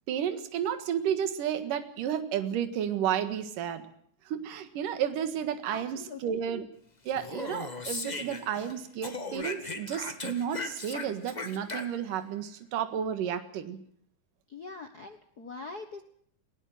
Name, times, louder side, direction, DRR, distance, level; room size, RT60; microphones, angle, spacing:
voice 1, 0.1-3.9 4.3-6.7 7.0-13.8, right 9 dB, 70° right, 9 dB, 3.2 m, -32 dB
voice 2, 5.7-6.4 14.5-16.0, left 3 dB, 75° left, 6 dB, 0.8 m, -43 dB
Speech, 7.1-8.7 9.0-12.2, left 3 dB, 60° left, 0.4 m, -38 dB
20.0 x 19.0 x 7.8 m, 0.65 s
omnidirectional pair, 4.0 m